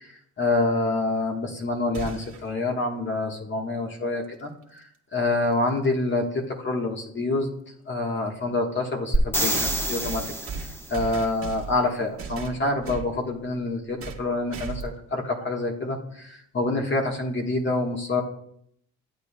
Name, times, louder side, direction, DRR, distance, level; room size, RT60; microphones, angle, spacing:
voice 1, 0.4-4.8 5.1-7.5 7.9-10.2 10.9-18.2, left 2 dB, 40° left, 1 dB, 1.4 m, -27 dB
sound 1, 1.9-2.5 4.6-4.7 5.8-5.9 9.5-11.8 12.2-13.1 14.0-14.3 14.5-15.0, right 5 dB, 45° right, 1.5 m, -36 dB
sound 2, 9.1-11.0 14.8-14.9, right 1 dB, 10° left, 1.1 m, -26 dB
11.5 x 8.4 x 2.3 m, 0.69 s
cardioid pair, 90°, 30 cm